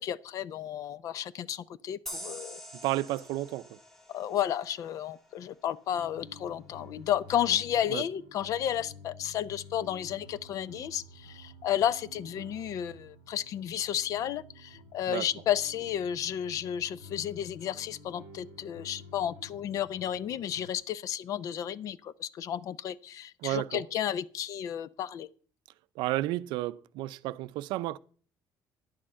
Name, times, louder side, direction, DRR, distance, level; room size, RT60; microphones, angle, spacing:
voice 1, 0.0-2.6 4.1-25.3, left 10 dB, 45° left, 0.5 m, -32 dB
sound 1, 2.1-5.4, equal, 5° left, 0.8 m, -45 dB
voice 2, 2.8-3.8 7.9-8.0 15.1-15.3 23.4-23.8 26.0-28.0, right 16 dB, 80° right, 0.5 m, -32 dB
sound 2, 5.9-20.7, left 2 dB, 85° left, 6.3 m, -51 dB
10.5 x 8.7 x 5.5 m
cardioid pair, 175°, 8 cm